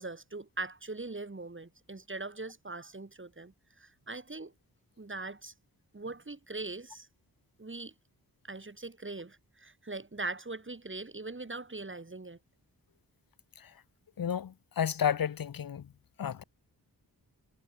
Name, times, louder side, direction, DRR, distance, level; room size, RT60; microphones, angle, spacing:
voice 1, 0.0-4.5 5.0-5.5 5.9-7.1 7.6-7.9 8.4-12.4, right 3 dB, 30° right, 4.1 m, -41 dB
voice 2, 14.2-15.9 16.2-16.4, left 8 dB, 60° left, 1.1 m, -32 dB
cardioid pair, 45°, 40 cm